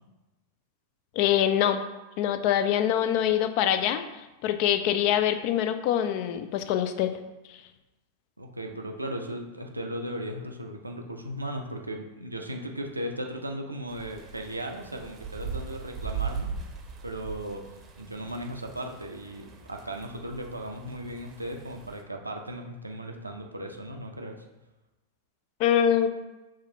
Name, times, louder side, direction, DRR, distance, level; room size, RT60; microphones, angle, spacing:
voice 1, 1.2-1.8 2.2-4.0 4.4-7.1 25.6-26.1, left 10 dB, 45° left, 9 dB, 0.3 m, -24 dB
voice 2, 8.4-16.5 17.0-17.6 18.0-24.4, right 1 dB, 85° right, 3 dB, 0.5 m, -36 dB
sound 1, 13.9-22.0, right 6 dB, 30° right, 0.6 m, -39 dB
4.9 x 3.2 x 2.7 m, 1.0 s
figure-of-eight pair, 90°, 0 cm